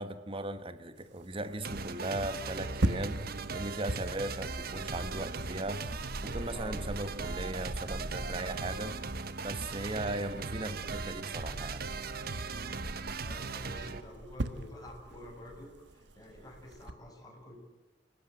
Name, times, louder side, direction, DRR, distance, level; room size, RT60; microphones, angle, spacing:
voice 1, 0.0-3.2 3.5-9.0 9.4-11.8, right 1 dB, 30° right, 1.4 m, -38 dB
sound 1, 1.0-16.9, right 1 dB, 75° right, 1.4 m, -41 dB
sound 2, 1.6-14.0, right 4 dB, 55° right, 1.1 m, -38 dB
voice 2, 6.5-6.8 13.2-17.6, left 1 dB, 20° left, 6.9 m, -49 dB
28.0 x 17.0 x 9.1 m
head